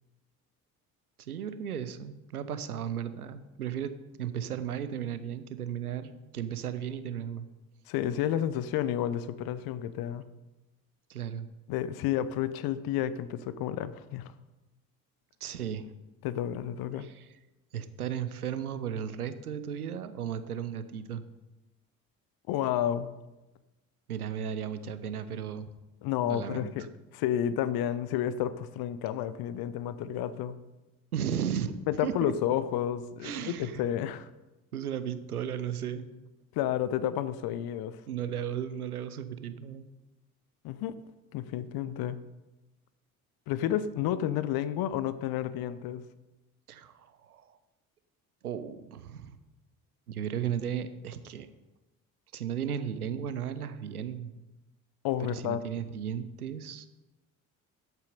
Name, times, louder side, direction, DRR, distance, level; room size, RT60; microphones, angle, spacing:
voice 1, 1.2-3.9 4.2-7.5 11.1-11.5 15.4-15.8 17.0-17.3 17.7-21.2 24.1-25.7 26.2-26.7 31.1-32.3 33.2-33.8 34.7-36.0 38.1-39.9 46.7-47.6 48.4-49.4 50.1-51.5 52.3-54.4 55.3-56.9, right 8 dB, 90° right, 13 dB, 0.7 m, -35 dB
voice 2, 7.9-10.3 11.7-14.3 16.2-17.1 22.5-23.1 26.0-26.9 27.1-30.6 31.9-34.3 36.5-38.0 40.6-41.0 41.3-42.2 43.5-46.0 55.0-55.6, left 11 dB, 55° left, 15 dB, 0.8 m, -31 dB
11.0 x 8.3 x 5.4 m, 1.1 s
figure-of-eight pair, 55°, 43 cm